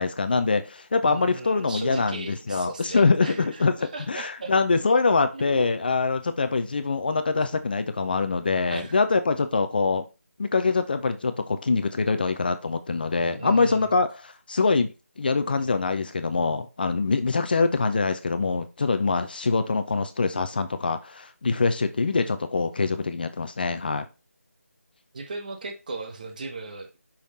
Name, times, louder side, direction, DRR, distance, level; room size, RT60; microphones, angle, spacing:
voice 1, 0.0-3.7 4.1-10.0 10.4-14.9 15.2-24.1, left 4 dB, 35° left, 0.6 m, -24 dB
voice 2, 1.1-4.5 5.3-5.6 8.7-9.0 13.4-13.9 25.1-27.0, right 3 dB, 30° right, 1.0 m, -37 dB
5.8 x 5.1 x 4.0 m
figure-of-eight pair, 160°, 8 cm